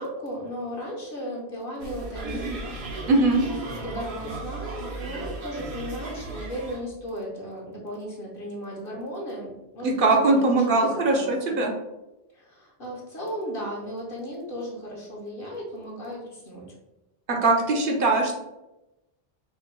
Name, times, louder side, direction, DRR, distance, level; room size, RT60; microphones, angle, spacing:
voice 1, 0.0-2.5 3.4-10.0 10.3-11.6 12.3-16.6, equal, 60° left, -3 dB, 1.1 m, -36 dB
Afternoon carnival scene in the village of Reyrieux, 1.8-6.8, right 2 dB, 75° right, 1.1 m, -35 dB
voice 2, 3.1-3.4 9.8-11.7 17.3-18.4, right 2 dB, 60° right, 1 dB, 0.8 m, -21 dB
3.4 x 2.2 x 4.4 m, 0.97 s
omnidirectional pair, 1.1 m